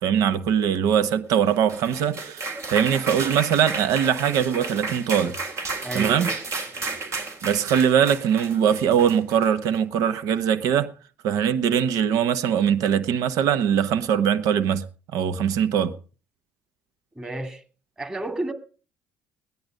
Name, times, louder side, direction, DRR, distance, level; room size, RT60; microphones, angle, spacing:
voice 1, 0.0-5.4 5.9-6.3 7.4-10.9 11.2-14.8 15.1-15.9, right 8 dB, 70° right, 1.1 m, -22 dB
sound 1, 1.5-9.8, right 3 dB, 50° right, 3.6 m, -32 dB
voice 2, 5.8-6.4 17.1-17.6 18.0-18.5, right 2 dB, 15° right, 2.8 m, -31 dB
17.0 x 10.5 x 5.2 m
hypercardioid pair, 60°, 6 cm